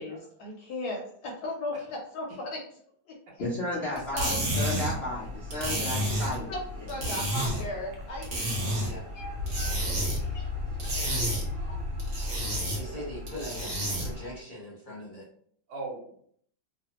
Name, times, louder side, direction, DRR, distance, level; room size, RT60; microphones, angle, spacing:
voice 1, 0.0-2.6 3.1-3.2 3.7-4.8 6.5-6.6 6.9-8.3 9.1-9.8 10.3-10.5 11.5-11.8, left 1 dB, 70° left, 0 dB, 1.0 m, -37 dB
voice 2, 3.4-6.5, left 1 dB, 85° left, -6 dB, 0.5 m, -33 dB
sound 1, 4.0-14.3, equal, 45° right, 0.8 m, -32 dB
sound 2, 7.4-7.5 7.9-8.5 8.8-12.8, left 2 dB, 90° right, 1.4 m, -34 dB
voice 3, 9.9-10.4 12.8-13.0 14.6-14.7 15.7-16.2, right 3 dB, 70° right, -1 dB, 1.3 m, -42 dB
voice 4, 12.7-15.3, equal, 40° left, -7 dB, 0.7 m, -41 dB
3.2 x 2.1 x 2.8 m, 0.62 s
omnidirectional pair, 2.0 m